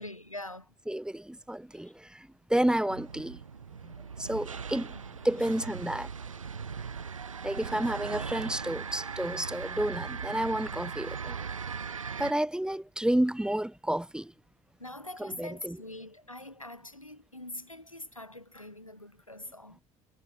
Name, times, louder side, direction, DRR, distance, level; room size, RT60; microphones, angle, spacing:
voice 1, 0.0-0.7 1.8-1.9 4.9-5.0 5.4-5.7 7.7-7.9 13.1-13.2 14.8-19.8, left 1 dB, 90° left, 3.9 m, -44 dB
voice 2, 0.9-3.4 3.8-3.9 4.2-5.0 5.2-6.1 7.4-11.4 12.2-14.3 15.2-15.8, right 1 dB, 5° right, 2.1 m, -30 dB
sound 1, 2.9-12.3, right 6 dB, 85° right, 1.4 m, -39 dB
figure-of-eight pair, 55°, 17 cm